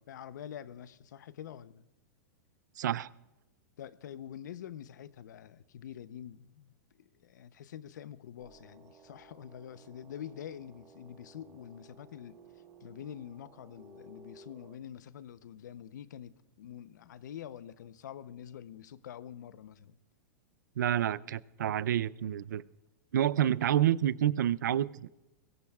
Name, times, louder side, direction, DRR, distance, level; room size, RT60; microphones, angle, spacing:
voice 1, 0.1-1.9 3.8-12.4 12.8-20.0, left 10 dB, 80° left, 0.7 m, -46 dB
voice 2, 2.8-3.1 20.8-22.6 23.1-25.1, right 11 dB, 90° right, 0.5 m, -28 dB
sound 1, 8.4-14.8, right 3 dB, 20° right, 1.4 m, -57 dB
22.5 x 19.0 x 2.4 m
supercardioid pair, 150°, 10 cm